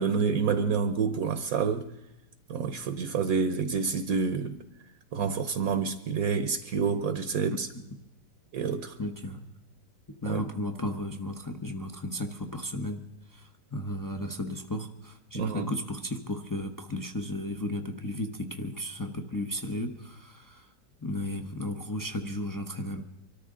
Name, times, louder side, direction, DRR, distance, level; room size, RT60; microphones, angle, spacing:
voice 1, 0.0-1.9 2.5-4.6 5.1-7.7 8.5-9.0 10.3-10.4 15.4-15.7, right 5 dB, 60° right, 1.1 m, -28 dB
voice 2, 9.0-9.5 10.2-13.0 13.3-20.7 21.0-23.0, left 1 dB, 25° left, 0.4 m, -34 dB
25.0 x 13.5 x 3.7 m
omnidirectional pair, 1.9 m